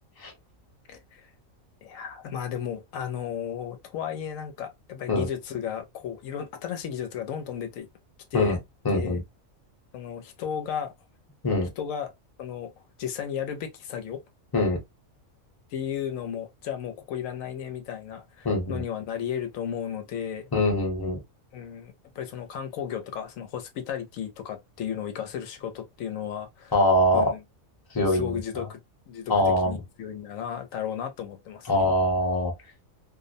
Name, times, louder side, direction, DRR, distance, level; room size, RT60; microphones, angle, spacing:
voice 1, 0.9-1.3 1.8-7.9 8.3-8.6 8.9-9.2 9.9-10.9 11.8-12.1 12.4-12.7 13.0-14.2 15.7-20.5 21.5-26.7 27.1-27.4 28.0-28.8 29.1-31.7, left 8 dB, 80° left, 1.0 m, -34 dB
voice 2, 8.8-9.2 11.4-11.7 14.5-14.8 18.4-18.8 20.5-21.2 26.7-27.3 27.9-28.7 29.3-29.8 31.7-32.5, left 1 dB, 20° left, 0.8 m, -23 dB
2.5 x 2.0 x 2.5 m
omnidirectional pair, 1.4 m